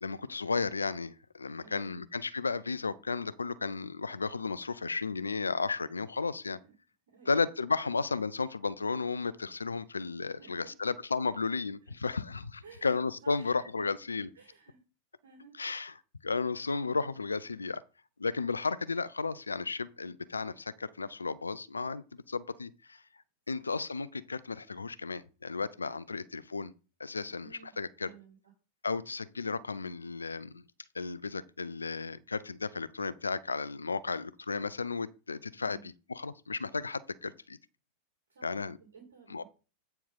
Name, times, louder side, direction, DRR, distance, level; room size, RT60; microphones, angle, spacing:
voice 1, 0.0-6.6 7.3-14.3 15.6-15.9 16.2-17.8 18.2-23.0 23.5-26.7 27.0-28.1 28.8-30.6 30.9-37.6 38.4-38.8 39.3-39.4, left 4 dB, 75° left, 0.5 m, -34 dB
voice 2, 1.6-2.0 7.1-7.4 10.4-10.9 11.8-12.2 12.6-13.8 14.3-14.8 15.2-15.6 23.5-23.7 27.4-27.7 28.0-28.4 35.6-35.9 38.3-39.4, right 5 dB, 65° right, 2.6 m, -56 dB
8.8 x 4.6 x 5.5 m
figure-of-eight pair, 90°, 0 cm